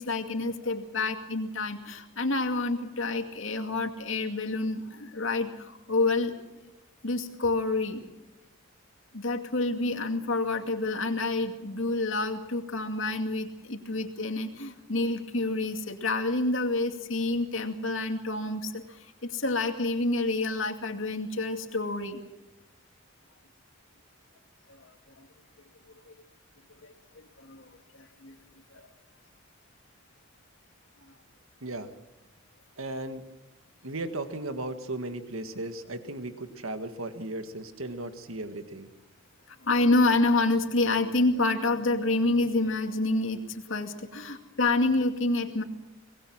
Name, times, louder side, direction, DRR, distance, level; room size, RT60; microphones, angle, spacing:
voice 1, 0.0-6.3 7.0-8.0 9.1-19.0 19.2-22.2 24.8-24.9 25.2-25.3 26.8-27.7 28.2-28.3 28.7-28.9 39.6-45.6, left 2 dB, 70° left, 5 dB, 2.4 m, -28 dB
voice 2, 32.8-33.3 33.8-38.9, right 2 dB, 85° right, 9 dB, 1.8 m, -36 dB
24.5 x 20.0 x 6.3 m, 1.0 s
head